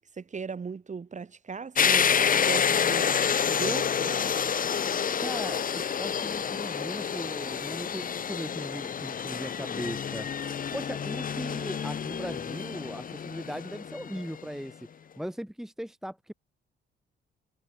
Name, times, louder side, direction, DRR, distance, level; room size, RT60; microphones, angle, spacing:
voice 1, 0.0-4.2, right 5 dB, 35° right, 5.5 m, -38 dB
sound 1, 1.7-14.4, left 7 dB, 45° left, 1.3 m, -28 dB
voice 2, 5.2-14.9 15.2-16.3, equal, ahead, 1.5 m, -38 dB
cardioid pair, 90°, 20 cm